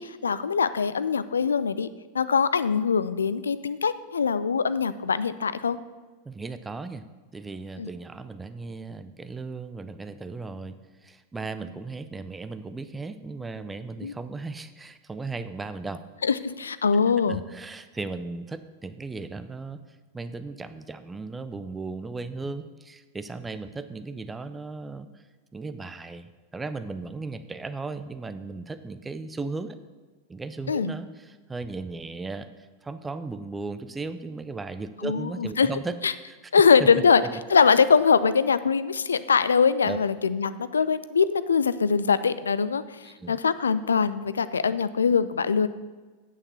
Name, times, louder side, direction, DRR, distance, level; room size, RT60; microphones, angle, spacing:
voice 1, 0.0-1.9 2.1-5.8 7.8-7.9 14.0-14.1 16.2-17.4 30.7-30.9 35.0-35.7 36.0-36.1 36.5-37.2 37.5-45.7, left 6 dB, 70° left, 15 dB, 0.4 m, -22 dB
voice 2, 6.3-7.0 7.3-10.8 11.0-16.0 17.3-19.8 20.1-25.3 25.5-29.8 30.3-36.0 36.3-36.4 36.8-37.0 39.8-40.0 43.0-43.4, right 3 dB, 10° right, 11 dB, 0.5 m, -36 dB
8.7 x 7.2 x 6.9 m, 1.3 s
figure-of-eight pair, 90°, 0 cm